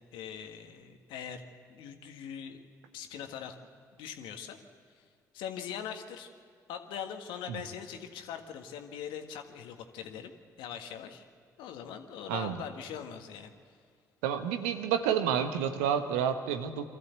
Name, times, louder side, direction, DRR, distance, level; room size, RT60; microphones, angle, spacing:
voice 1, 0.1-2.6 2.9-3.6 4.0-4.6 4.9-5.0 5.3-6.3 6.7-10.3 10.6-11.2 11.6-13.7, left 8 dB, 70° left, 6 dB, 1.6 m, -42 dB
voice 2, 12.3-12.6 14.2-16.9, right 8 dB, 80° right, 8 dB, 1.1 m, -29 dB
23.5 x 14.0 x 8.1 m, 2.1 s
hypercardioid pair, 50°, 9 cm